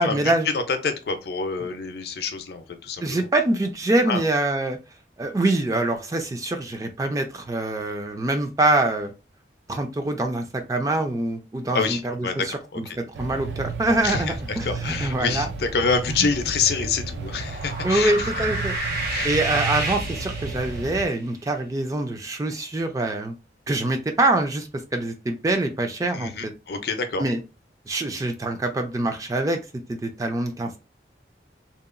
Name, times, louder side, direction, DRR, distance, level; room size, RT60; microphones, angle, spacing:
voice 1, 0.0-0.5 3.0-4.8 5.2-9.1 9.7-15.5 17.8-18.7 19.2-23.3 23.7-26.5 27.2-27.4 27.9-29.6 29.9-30.8, right 2 dB, 20° right, 5 dB, 0.3 m, -25 dB
voice 2, 0.5-3.3 4.1-4.2 11.7-13.0 14.0-18.4 19.1-19.3 26.1-27.2, left 5 dB, 60° left, 7 dB, 0.5 m, -27 dB
sound 1, 13.1-21.1, right 4 dB, 90° right, 0.5 m, -33 dB
sound 2, 17.3-21.0, right 2 dB, 55° right, 0.9 m, -30 dB
2.8 x 2.2 x 2.4 m, 0.29 s
head